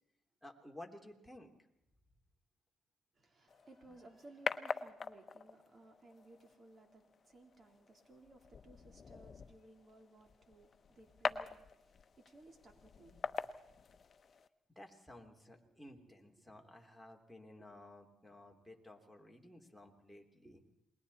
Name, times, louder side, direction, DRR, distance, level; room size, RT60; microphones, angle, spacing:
voice 1, 0.4-1.5 3.9-4.0 14.7-20.7, left 1 dB, ahead, 3.4 m, -55 dB
voice 2, 3.2-13.5, right 2 dB, 40° right, 4.0 m, -60 dB
sound 1, 3.5-14.5, left 5 dB, 45° left, 1.0 m, -45 dB
29.0 x 21.0 x 4.3 m
cardioid pair, 90°, 0 cm